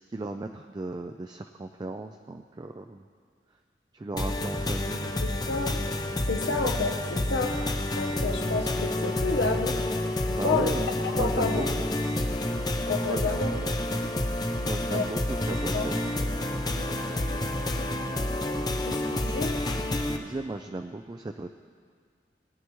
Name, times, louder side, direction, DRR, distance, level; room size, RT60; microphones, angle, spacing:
voice 1, 0.0-3.1 3.9-5.1 10.3-11.9 13.1-13.4 14.6-16.0 20.0-21.6, right 2 dB, 25° right, 6 dB, 0.3 m, -36 dB
sound 1, 4.2-20.2, left 1 dB, 20° left, 0.6 m, -29 dB
voice 2, 5.2-5.9 6.2-7.5 7.9-9.8 10.2-10.7 11.0-11.7 12.9-13.5 13.8-14.1 14.9-15.0 15.7-15.9 18.8-19.6, left 3 dB, 80° left, 4 dB, 0.9 m, -30 dB
20.5 x 9.6 x 3.1 m, 2.1 s
head